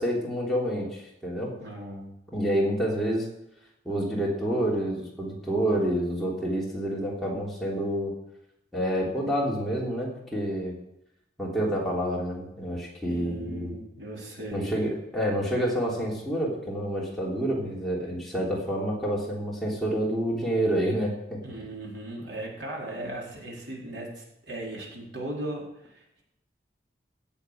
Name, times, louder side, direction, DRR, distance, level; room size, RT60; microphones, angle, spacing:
voice 1, 0.0-1.6 2.3-3.3 3.8-8.1 8.7-10.7 11.4-13.7 14.5-21.4, equal, ahead, -5 dB, 3.3 m, -28 dB
voice 2, 1.6-2.2 13.1-14.7 21.4-26.2, right 1 dB, 85° right, -3 dB, 4.5 m, -37 dB
16.5 x 7.0 x 6.6 m, 0.83 s
head